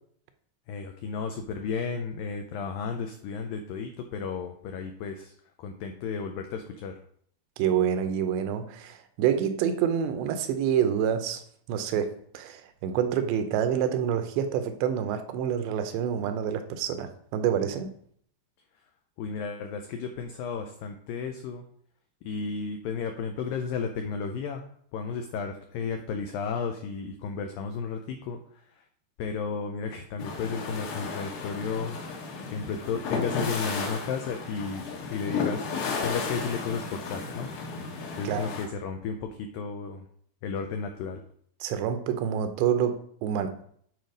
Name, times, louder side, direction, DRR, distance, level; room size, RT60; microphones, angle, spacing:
voice 1, 0.7-5.3 5.6-6.9 19.2-21.6 22.2-24.6 24.9-28.4 29.2-32.0 32.5-37.5 38.2-40.1 40.4-41.2, left 5 dB, 90° left, 2.0 m, -33 dB
voice 2, 7.6-11.4 11.7-17.9 38.2-38.5 41.6-43.7, right 9 dB, 85° right, 3.0 m, -27 dB
sound 1, 30.2-38.7, left 4 dB, 65° left, 2.9 m, -34 dB
9.4 x 4.7 x 5.2 m
omnidirectional pair, 4.9 m